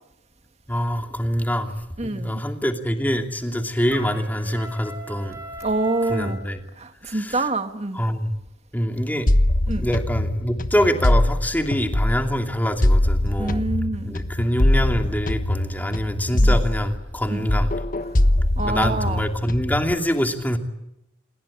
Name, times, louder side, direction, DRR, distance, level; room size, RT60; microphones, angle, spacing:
voice 1, 0.7-1.7 2.0-5.4 6.1-6.6 7.1-7.4 7.9-8.3 8.7-9.3 9.8-13.6 14.0-17.7 18.6-20.6, equal, 10° left, 2.7 m, -25 dB
voice 2, 2.0-2.4 5.6-6.4 6.8-8.0 9.7-9.9 13.4-14.1 16.3-16.6 17.3-17.5 18.6-19.2, right 2 dB, 35° right, 2.0 m, -26 dB
Trumpet, 3.9-6.4, right 1 dB, 15° right, 7.3 m, -39 dB
sound 1, 9.3-12.4 12.8-17.2 17.5-19.9, left 1 dB, 45° left, 1.2 m, -22 dB
28.0 x 21.0 x 8.8 m
head